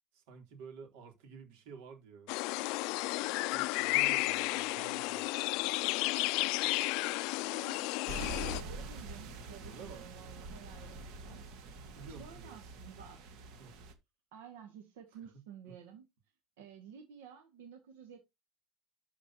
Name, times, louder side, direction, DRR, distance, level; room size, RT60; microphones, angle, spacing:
voice 1, 0.1-2.3 3.5-5.3 9.6-10.0 11.7-12.7 13.6-13.7 15.1-15.8, right 6 dB, 65° right, 3.6 m, -51 dB
sound 1, 2.3-8.6, left 23 dB, 55° left, 0.4 m, -32 dB
voice 2, 7.4-8.0 8.5-11.8 12.2-13.2 14.3-16.1 16.6-18.2, right 8 dB, 85° right, 2.0 m, -52 dB
sound 2, 8.1-13.9, right 2 dB, 50° right, 2.0 m, -45 dB
12.5 x 5.0 x 3.0 m
supercardioid pair, 155°, 0 cm